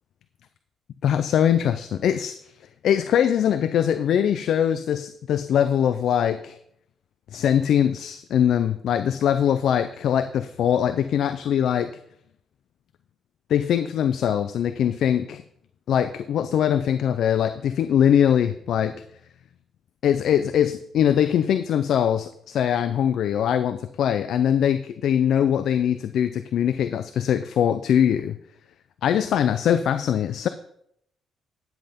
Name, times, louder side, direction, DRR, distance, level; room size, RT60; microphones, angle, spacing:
voice 1, 1.0-2.5 2.8-6.6 7.3-11.9 13.5-15.4 15.9-19.0 20.0-28.4 29.0-30.5, left 9 dB, 70° left, 11 dB, 0.6 m, -22 dB
10.0 x 7.9 x 5.2 m, 0.70 s
cardioid pair, 90°, 0 cm